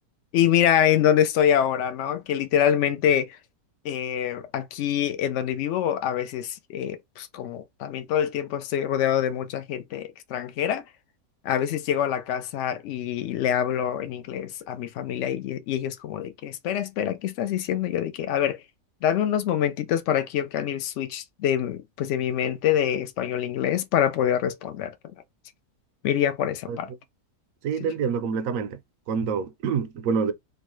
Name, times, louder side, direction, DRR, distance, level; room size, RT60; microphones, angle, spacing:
voice 1, 0.3-3.4 3.8-10.8 11.4-18.6 19.0-25.1 26.0-26.9, left 10 dB, 75° left, 0.6 m, -25 dB
voice 2, 27.6-28.8 29.1-30.3, right 6 dB, 70° right, 0.8 m, -26 dB
3.1 x 2.2 x 3.0 m
omnidirectional pair, 1.8 m